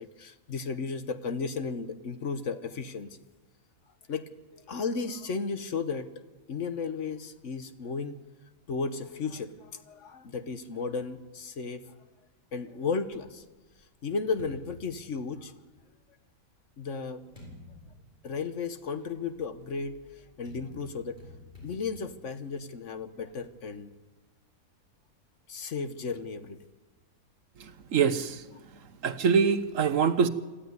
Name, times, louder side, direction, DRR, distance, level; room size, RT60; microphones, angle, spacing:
voice 1, 0.0-3.2 4.1-6.1 6.5-8.2 8.7-11.8 12.5-13.4 14.0-15.6 16.8-17.2 18.2-21.2 21.6-23.9 25.5-26.6, left 4 dB, 60° left, 1.4 m, -34 dB
sound 1, 13.2-15.9 16.6-23.6, left 2 dB, 30° left, 7.1 m, -52 dB
voice 2, 27.9-28.4 29.0-30.3, right 6 dB, 65° right, 1.3 m, -24 dB
26.5 x 13.5 x 9.5 m
omnidirectional pair, 1.5 m